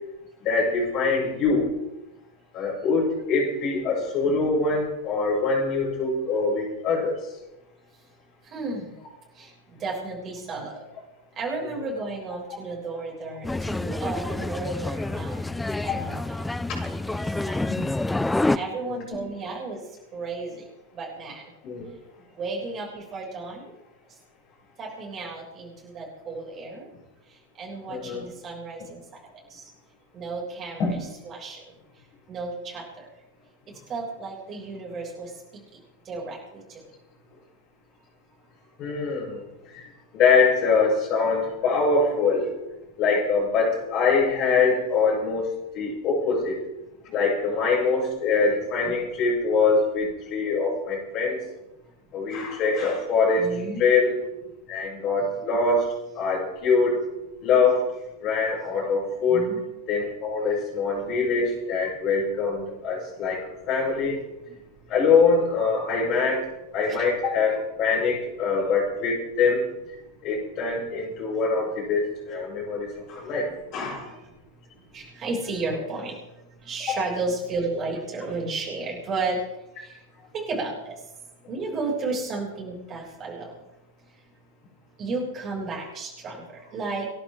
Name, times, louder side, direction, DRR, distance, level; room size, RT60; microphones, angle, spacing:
voice 1, 0.4-1.7 2.5-7.2 15.9-16.0 16.7-16.8 18.8-19.0 21.6-21.9 27.9-28.2 30.8-30.9 38.8-39.4 39.7-39.8 40.1-42.5 43.0-45.5 45.7-46.6 47.1-51.4 52.1-53.5 53.8-54.1 54.7-55.9 56.2-57.0 57.4-57.9 58.2-59.5 59.9-64.2 64.9-66.5 66.7-69.6 70.2-73.5 73.7-74.1 76.9-77.0, left 4 dB, 35° left, -4 dB, 7.8 m, -23 dB
voice 2, 8.4-9.0 9.3-10.8 11.4-16.4 16.8-17.6 18.5-19.8 20.1-20.7 20.9-21.5 22.4-23.7 24.8-26.9 27.3-29.0 29.5-29.7 30.1-31.0 31.2-31.6 32.3-33.1 33.9-35.4 36.1-36.8 53.4-53.8 59.3-59.6 66.9-67.1 74.0-74.3 74.9-76.2 76.6-79.4 79.8-80.0 80.3-81.0 81.5-83.5 85.0-87.1, right 3 dB, 30° right, -2 dB, 6.9 m, -33 dB
sound 1, 13.4-18.6, left 2 dB, 5° left, 0.7 m, -28 dB
29.5 x 11.5 x 3.9 m, 0.94 s
figure-of-eight pair, 90°, 0 cm